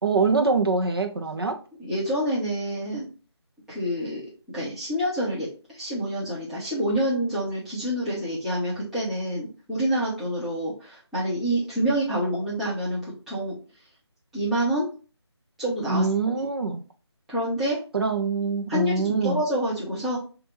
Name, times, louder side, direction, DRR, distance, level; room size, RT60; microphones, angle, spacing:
voice 1, 0.0-1.6 15.9-16.8 17.9-19.4, right 4 dB, 55° right, 0.8 m, -24 dB
voice 2, 1.8-3.1 3.7-4.2 4.5-13.6 14.3-14.9 15.6-16.0 16.4-16.5 17.3-17.8 18.7-20.2, equal, ahead, 0.6 m, -27 dB
6.0 x 2.6 x 3.0 m
figure-of-eight pair, 165°, 15 cm